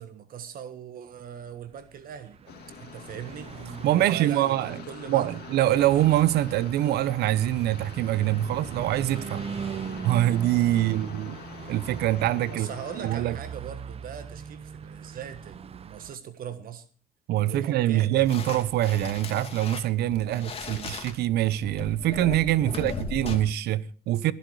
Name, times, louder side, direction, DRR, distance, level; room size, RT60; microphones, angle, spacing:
voice 1, 0.0-3.6 3.9-5.3 10.8-11.0 12.5-16.8 17.4-18.2 20.2-20.5 22.6-22.9, right 8 dB, 60° right, 1.5 m, -40 dB
Car passing by / Truck, 1.8-16.2, right 7 dB, 35° right, 0.8 m, -40 dB
sound 1, 2.5-13.2, left 8 dB, 70° left, 2.4 m, -45 dB
voice 2, 3.8-4.8 5.1-9.5 10.0-11.4 11.7-12.7 13.0-13.4 17.3-24.3, right 13 dB, 75° right, 0.9 m, -24 dB
sound 2, 18.2-23.4, left 5 dB, 35° left, 2.7 m, -37 dB
19.0 x 10.5 x 4.8 m
cardioid pair, 110°, 17 cm